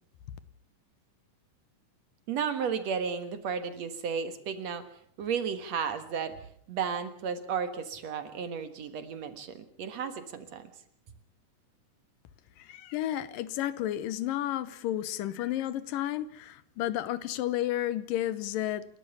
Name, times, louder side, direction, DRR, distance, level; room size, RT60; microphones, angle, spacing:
voice 1, 2.3-4.8 5.2-10.6, right 6 dB, 60° right, 10 dB, 2.5 m, -33 dB
voice 2, 12.6-18.9, left 13 dB, 85° left, 15 dB, 2.7 m, -32 dB
28.5 x 13.5 x 7.1 m, 0.64 s
omnidirectional pair, 3.8 m